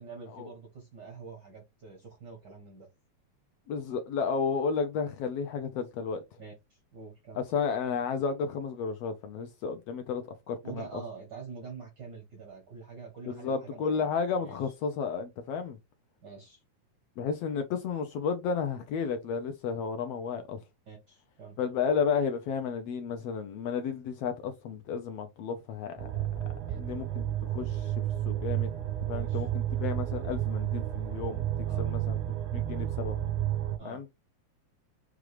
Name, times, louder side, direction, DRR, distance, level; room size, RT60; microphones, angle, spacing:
voice 1, 0.0-2.9 6.4-7.4 10.6-14.1 14.4-14.6 16.2-16.6 20.9-21.6 26.7-26.8 29.1-29.5 31.7-31.9 33.8-34.0, right 5 dB, 70° right, 1.0 m, -46 dB
voice 2, 3.7-6.2 7.3-11.0 13.3-15.8 17.2-20.6 21.6-26.1 26.8-27.9 28.3-28.7 29.1-32.2 32.5-33.2 33.8-34.0, left 6 dB, 80° left, 1.4 m, -32 dB
sound 1, 26.0-33.8, right 12 dB, 85° right, 2.1 m, -31 dB
6.1 x 2.4 x 3.2 m
omnidirectional pair, 3.4 m